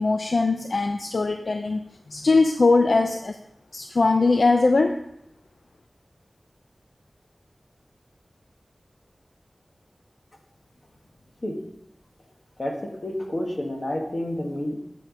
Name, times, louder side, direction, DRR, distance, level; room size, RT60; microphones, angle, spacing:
voice 1, 0.0-1.8 2.1-3.4 3.7-5.0, left 3 dB, 75° left, 6 dB, 0.5 m, -21 dB
voice 2, 12.6-14.7, left 1 dB, 50° left, 1 dB, 1.6 m, -29 dB
9.0 x 4.7 x 5.2 m, 0.79 s
wide cardioid pair, 50°, 0 cm